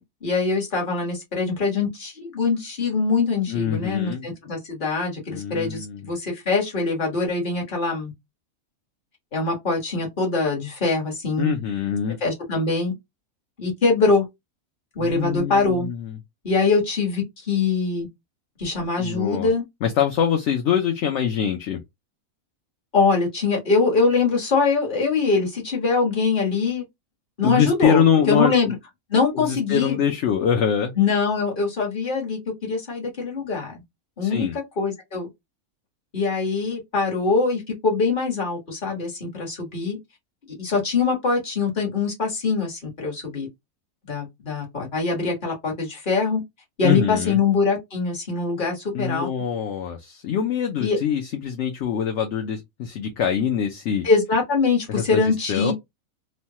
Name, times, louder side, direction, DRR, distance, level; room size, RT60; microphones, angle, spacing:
voice 1, 0.2-8.1 9.3-11.5 12.2-12.9 13.6-14.2 14.9-15.9 16.4-18.1 18.6-19.6 22.9-26.8 27.4-28.7 29.1-30.0 31.0-33.8 34.2-34.5 34.8-35.3 36.1-40.0 40.6-43.5 44.1-46.4 46.8-49.3 50.8-51.0 54.0-55.7, left 4 dB, 35° left, 1.4 m, -23 dB
voice 2, 3.5-4.3 5.3-6.0 11.4-12.2 15.0-16.2 19.0-19.5 19.8-21.8 27.4-28.5 29.3-30.9 34.2-34.5 46.8-47.4 48.9-54.0 54.9-55.7, left 8 dB, 65° left, 0.8 m, -24 dB
3.1 x 2.2 x 2.7 m
omnidirectional pair, 1.5 m